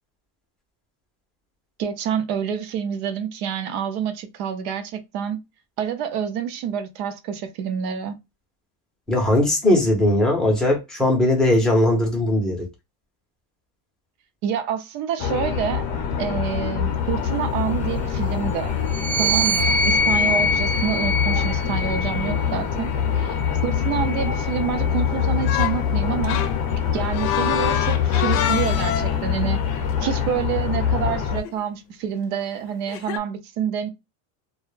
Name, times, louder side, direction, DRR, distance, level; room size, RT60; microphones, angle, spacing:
voice 1, 1.8-5.4 5.8-8.2 14.4-15.9 16.2-18.8 19.2-26.4 26.9-29.6 30.0-33.9, right 8 dB, 55° right, 0.7 m, -27 dB
voice 2, 9.1-12.7, left 1 dB, ahead, 0.6 m, -19 dB
sound 1, 15.2-31.4, left 8 dB, 40° left, 0.6 m, -24 dB
sound 2, 18.9-22.5 23.3-24.9, left 1 dB, 80° right, 0.9 m, -24 dB
sound 3, 25.5-25.9 26.2-29.3 31.4-31.6 32.9-33.2, left 10 dB, 80° left, 0.6 m, -26 dB
2.3 x 2.1 x 3.1 m
supercardioid pair, 135°, 48 cm